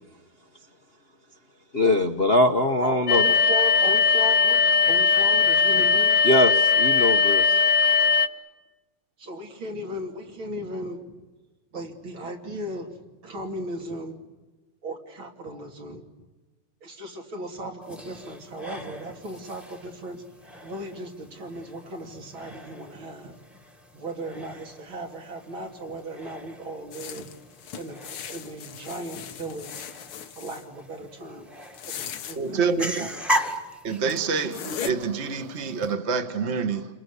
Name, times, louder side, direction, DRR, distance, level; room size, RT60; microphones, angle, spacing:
voice 1, 1.7-3.2 6.2-7.6, left 1 dB, 35° left, 2 dB, 1.0 m, -22 dB
voice 2, 2.8-6.2 9.2-11.2 11.7-14.2 14.8-16.1 16.8-20.2 20.6-23.4 23.9-27.3 27.7-29.9 30.2-31.5 31.8-33.2, right 1 dB, 65° right, 2 dB, 3.7 m, -36 dB
sound 1, 3.1-8.3, left 6 dB, 60° left, 1.5 m, -19 dB
sound 2, 17.8-35.9, equal, ahead, 1.6 m, -38 dB
sound 3, 26.9-30.6 31.6-32.4 33.6-33.7 34.1-34.2 34.5-34.9, left 9 dB, 75° left, 2.0 m, -38 dB
voice 3, 32.3-33.1 33.8-36.9, right 5 dB, 30° right, 9 dB, 1.7 m, -27 dB
30.0 x 22.5 x 8.4 m, 1.2 s
omnidirectional pair, 2.4 m